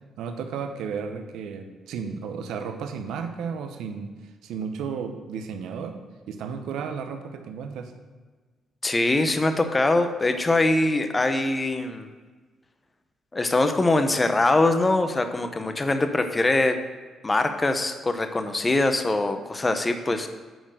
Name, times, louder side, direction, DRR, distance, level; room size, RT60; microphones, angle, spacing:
voice 1, 0.2-4.1 4.4-7.9, right 6 dB, 85° right, 6 dB, 0.8 m, -33 dB
voice 2, 8.8-12.1 13.3-16.8 17.2-20.3, left 2 dB, 20° left, 7 dB, 0.7 m, -23 dB
9.1 x 4.4 x 6.2 m, 1.4 s
cardioid pair, 90°, 0 cm